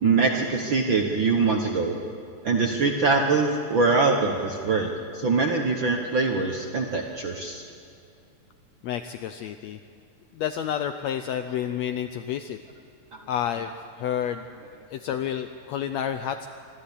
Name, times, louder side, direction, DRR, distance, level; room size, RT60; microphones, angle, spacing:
voice 1, 0.0-2.0 2.4-7.6 13.1-13.2, right 4 dB, 60° right, 2 dB, 1.3 m, -23 dB
voice 2, 8.8-9.8 10.3-12.6 13.3-14.4 14.9-16.5, left 9 dB, 80° left, 8 dB, 1.6 m, -30 dB
25.5 x 13.0 x 8.5 m, 2.4 s
omnidirectional pair, 3.7 m